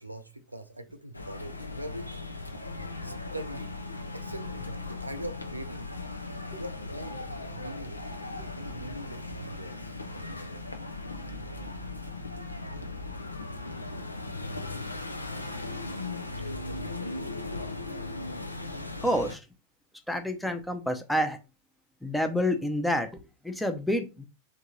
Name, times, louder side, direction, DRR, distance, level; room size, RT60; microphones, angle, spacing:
voice 1, 0.0-2.1 3.0-3.7 4.1-5.9 6.6-7.2 7.5-8.0 8.5-10.0, right 1 dB, 85° right, 0.4 m, -41 dB
sound 1, 1.1-19.4, left 2 dB, 85° left, 0.5 m, -38 dB
voice 2, 19.0-19.5 20.1-21.4 22.0-24.3, left 1 dB, ahead, 0.6 m, -28 dB
3.6 x 2.7 x 3.0 m
figure-of-eight pair, 90°, 0 cm